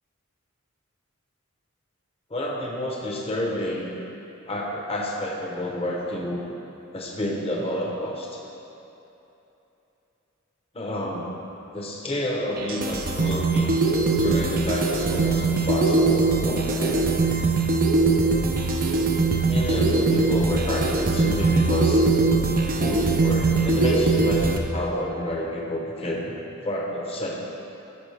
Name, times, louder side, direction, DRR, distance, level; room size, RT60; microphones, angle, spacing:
voice 1, 2.3-4.0 4.5-6.4 6.9-8.3 10.7-11.4 11.7-13.7 14.2-17.0 19.4-22.1 22.8-27.4, left 1 dB, 30° left, -2 dB, 0.9 m, -29 dB
sound 1, 12.6-24.6, right 3 dB, 45° right, 0.6 m, -21 dB
14.0 x 5.0 x 3.4 m, 3.0 s
head